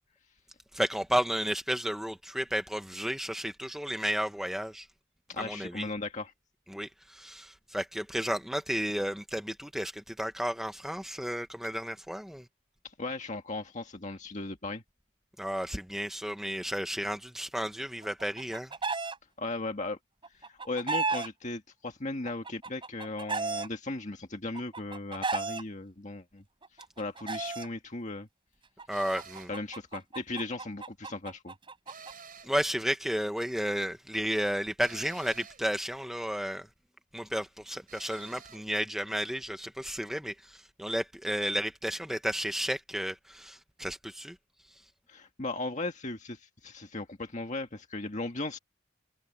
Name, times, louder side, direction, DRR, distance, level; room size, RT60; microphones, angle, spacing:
voice 1, 0.7-4.9 5.4-5.9 6.7-12.4 15.4-18.7 28.9-29.5 32.4-36.7 37.1-44.4 44.7-44.8, equal, ahead, 0.8 m, -32 dB
voice 2, 5.3-6.3 12.8-14.8 19.4-20.0 20.4-26.4 27.0-28.3 29.5-31.5 45.1-48.6, left 2 dB, 35° left, 1.8 m, -37 dB
Chicken rooster, 18.0-19.2 20.2-21.3 22.3-23.7 24.6-25.6 26.6-27.7 28.8-32.1, right 4 dB, 25° right, 5.3 m, -34 dB
sound 1, 28.9-29.6 31.9-32.6 34.8-35.7 37.9-38.7, right 6 dB, 45° right, 5.8 m, -50 dB
head